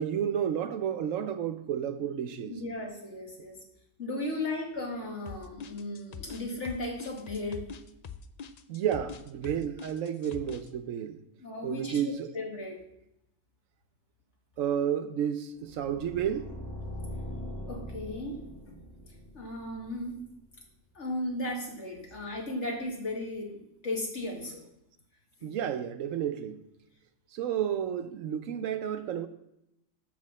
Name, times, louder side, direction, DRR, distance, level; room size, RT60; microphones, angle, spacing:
voice 1, 0.0-2.6 4.3-4.4 8.7-11.2 11.6-12.4 14.6-16.6 25.4-26.7 27.3-29.3, right 9 dB, 70° right, 1.0 m, -31 dB
voice 2, 2.5-3.6 4.0-7.6 11.4-12.0 12.3-12.8 17.7-18.4 19.3-20.2 20.9-24.6, left 1 dB, 55° left, 2.4 m, -35 dB
sound 1, 5.3-10.7, left 6 dB, 75° left, 0.3 m, -43 dB
sound 2, 15.6-20.5, left 1 dB, 20° left, 1.2 m, -42 dB
7.4 x 6.1 x 7.2 m
omnidirectional pair, 1.4 m